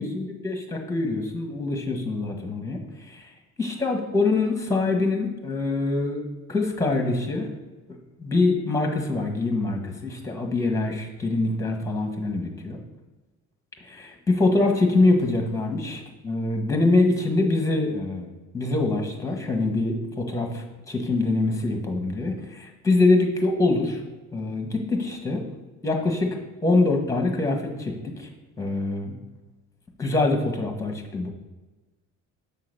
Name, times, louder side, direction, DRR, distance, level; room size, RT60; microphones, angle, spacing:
voice 1, 0.0-3.3 3.6-6.2 6.5-7.5 7.9-12.8 13.8-18.3 18.5-24.0 24.3-25.4 25.8-28.3 28.6-29.2 30.0-31.3, left 2 dB, 10° left, 2 dB, 1.1 m, -24 dB
6.8 x 3.8 x 6.4 m, 1.2 s
cardioid pair, 140°, 31 cm